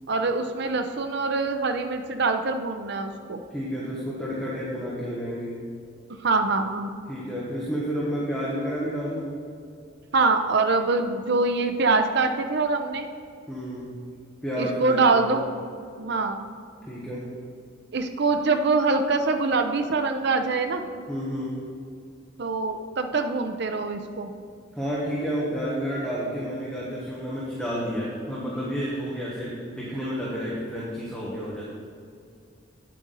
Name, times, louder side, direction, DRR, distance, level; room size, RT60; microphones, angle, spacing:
voice 1, 0.1-3.4 6.2-6.9 10.1-13.1 14.6-15.4 16.0-16.4 17.9-20.9 22.4-24.3, right 3 dB, 55° right, 6 dB, 0.6 m, -24 dB
voice 2, 3.5-5.6 7.1-9.4 13.5-14.0 14.4-15.4 16.8-17.3 21.1-21.6 24.7-31.6, equal, 5° left, -7 dB, 1.2 m, -30 dB
8.8 x 7.6 x 4.0 m, 2.4 s
head